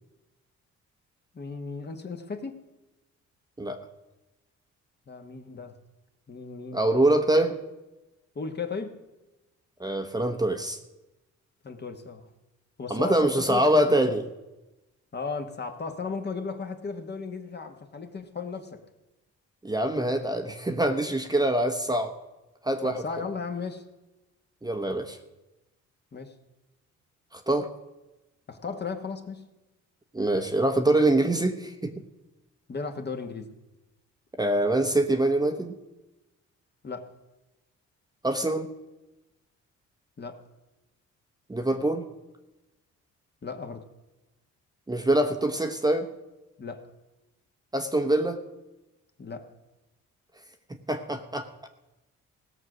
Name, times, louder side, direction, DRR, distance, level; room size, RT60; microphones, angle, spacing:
voice 1, 1.3-2.6 5.1-5.7 6.3-6.8 8.3-9.0 11.6-12.3 12.8-13.9 15.1-18.8 22.8-23.8 26.1-26.3 28.5-29.5 32.7-33.5 36.8-37.1 40.2-40.4 43.4-43.8 46.6-46.8 49.2-49.5, left 4 dB, 35° left, 5 dB, 1.3 m, -35 dB
voice 2, 6.7-7.6 9.8-10.8 12.9-14.2 19.6-22.1 22.6-23.0 24.6-25.2 27.3-27.7 30.1-31.9 34.4-35.7 38.2-38.7 41.5-42.0 44.9-46.1 47.7-48.4 50.9-51.5, right 1 dB, 15° right, 5 dB, 0.9 m, -24 dB
17.0 x 6.5 x 6.2 m, 1.0 s
cardioid pair, 90°, 30 cm